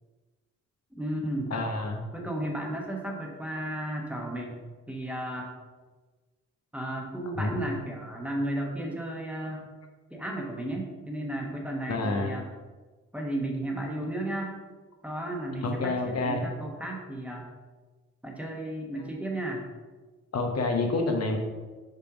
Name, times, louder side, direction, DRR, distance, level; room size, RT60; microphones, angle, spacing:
voice 1, 0.9-1.5 2.1-4.6 4.9-5.5 6.7-9.7 10.1-12.5 13.1-14.6 15.0-17.5 18.2-19.6, right 1 dB, 5° right, 0 dB, 1.3 m, -34 dB
voice 2, 1.5-2.0 7.3-7.6 11.9-12.3 15.6-16.4 20.3-21.4, left 3 dB, 55° left, 2 dB, 0.9 m, -28 dB
5.6 x 3.4 x 5.0 m, 1.3 s
cardioid pair, 75°, 30 cm